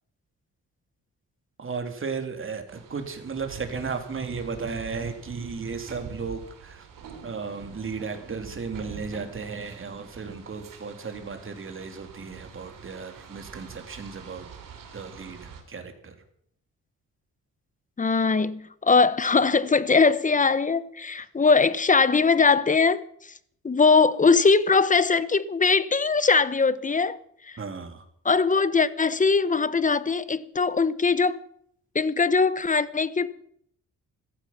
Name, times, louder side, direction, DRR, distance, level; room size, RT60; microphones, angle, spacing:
voice 1, 1.6-6.9 7.2-14.5 14.9-16.2 27.6-28.0, right 5 dB, 40° right, 3.0 m, -35 dB
sound 1, 2.7-15.6, right 6 dB, 80° right, 3.2 m, -45 dB
voice 2, 18.0-23.0 23.6-27.2 27.5-27.6 28.2-31.4 31.9-33.3, left 4 dB, 25° left, 0.9 m, -21 dB
15.5 x 14.5 x 5.8 m
cardioid pair, 95°, 32 cm